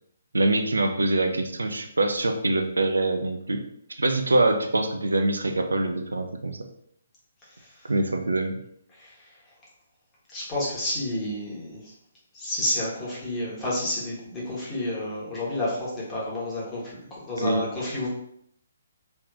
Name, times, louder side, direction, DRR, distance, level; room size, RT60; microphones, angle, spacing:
voice 1, 0.3-3.6 4.0-6.6 7.9-8.6 17.4-17.7, right 2 dB, 75° right, 6 dB, 0.4 m, -24 dB
voice 2, 10.3-11.9 12.3-17.0 17.2-18.1, left 1 dB, 15° left, -7 dB, 1.3 m, -30 dB
3.2 x 3.0 x 2.4 m, 0.70 s
figure-of-eight pair, 135°, 0 cm